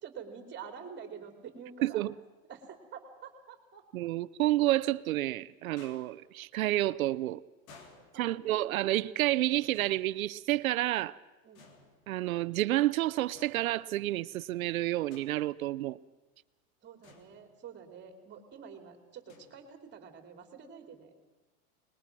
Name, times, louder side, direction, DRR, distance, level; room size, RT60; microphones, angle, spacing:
voice 1, 0.0-2.0 2.5-3.8 8.1-8.8 11.4-11.6 16.8-21.1, right 7 dB, 25° right, 3.2 m, -48 dB
voice 2, 1.8-2.1 3.9-7.4 8.2-11.2 12.1-16.0, right 15 dB, 90° right, 0.8 m, -30 dB
sound 1, 4.6-5.1 5.8-6.4 7.7-8.7 9.6-10.7 11.5-12.4 13.4-14.2 15.1-15.8 17.0-17.9 19.3-19.7, left 4 dB, 80° left, 3.4 m, -58 dB
25.5 x 21.0 x 6.1 m
supercardioid pair, 140°, 41 cm